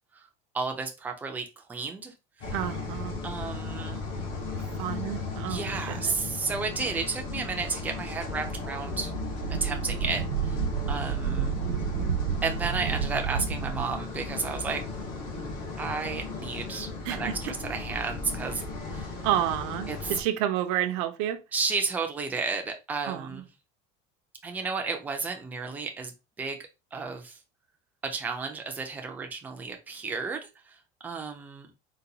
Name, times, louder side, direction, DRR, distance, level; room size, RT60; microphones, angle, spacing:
voice 1, 0.5-2.5 3.2-4.1 5.5-9.1 9.5-10.6 10.9-11.6 12.4-14.8 15.8-18.6 18.9-19.2 19.9-20.2 21.5-23.5 24.4-26.6 26.9-27.4 28.0-31.7, right 4 dB, 10° right, 0.3 m, -33 dB
sound 1, 2.4-20.2, left 3 dB, 45° left, 1.0 m, -36 dB
voice 2, 2.5-3.2 4.8-6.1 17.1-17.5 19.2-21.4 23.0-23.4, right 12 dB, 65° right, 0.5 m, -30 dB
Wind, 9.1-13.9, right 7 dB, 90° right, 0.9 m, -30 dB
4.0 x 2.2 x 2.7 m
cardioid pair, 180°, 19 cm